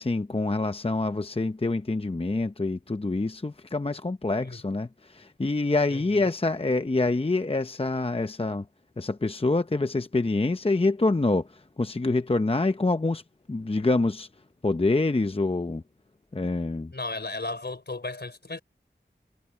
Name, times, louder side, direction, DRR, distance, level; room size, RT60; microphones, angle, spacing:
voice 1, 0.0-8.7 9.0-13.2 13.5-14.3 14.6-15.8 16.3-16.9, left 2 dB, 30° left, 0.7 m, -26 dB
voice 2, 5.9-6.3 16.9-18.6, left 2 dB, 65° left, 3.6 m, -35 dB
wide cardioid pair, 50°, 19 cm